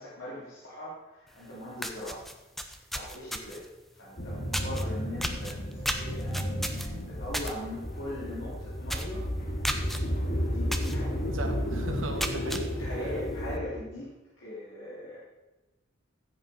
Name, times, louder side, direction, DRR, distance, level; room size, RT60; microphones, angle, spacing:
voice 1, 0.0-2.2 2.9-3.6 3.9-9.2 10.4-11.2 12.3-15.2, left 1 dB, 75° left, -8 dB, 3.4 m, -40 dB
sound 1, 1.4-1.5 1.8-3.7 4.5-4.8 5.2-7.5 7.9-8.1 8.4-8.5 8.9-9.2 9.6-10.0 10.7-11.0 11.4-11.5 12.0-12.6, equal, ahead, 0.8 m, -33 dB
sound 2, 4.2-13.7, equal, 45° left, 1.9 m, -33 dB
voice 2, 11.3-12.7, right 1 dB, 85° right, 4 dB, 1.7 m, -36 dB
14.5 x 8.1 x 4.3 m, 1.1 s
head